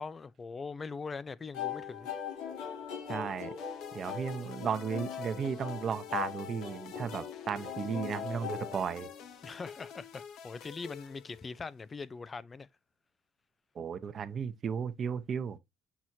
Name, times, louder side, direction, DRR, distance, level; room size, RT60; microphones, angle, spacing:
voice 1, 0.0-2.1 9.4-12.7, left 4 dB, 25° left, 0.5 m, -42 dB
sound 1, 1.5-9.5, left 8 dB, 85° left, 2.9 m, -40 dB
voice 2, 3.1-3.5 3.9-9.1 13.8-15.6, right 7 dB, 40° right, 0.8 m, -35 dB
sound 2, 3.6-11.8, left 8 dB, 65° left, 0.8 m, -49 dB
6.1 x 6.0 x 2.7 m
cardioid pair, 120°, 0 cm